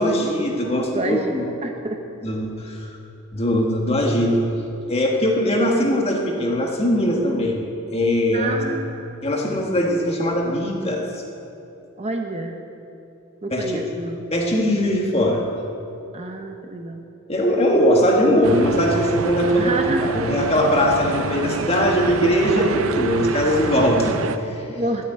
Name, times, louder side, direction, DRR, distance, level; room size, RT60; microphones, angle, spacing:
voice 1, 0.0-1.5 2.2-2.9 3.3-4.5 4.9-7.6 7.9-8.6 9.2-11.1 13.5-13.8 14.3-15.4 17.3-24.7, equal, 30° left, 0 dB, 1.8 m, -20 dB
voice 2, 0.9-1.4 1.6-2.0 8.3-9.2 12.0-12.6 13.4-14.2 16.1-17.0 19.6-20.1 22.6-22.9 24.7-25.0, right 2 dB, 30° right, 4 dB, 0.9 m, -28 dB
sound 1, 18.4-24.4, right 4 dB, 80° right, 0.6 m, -28 dB
13.0 x 8.9 x 9.4 m, 2.8 s
head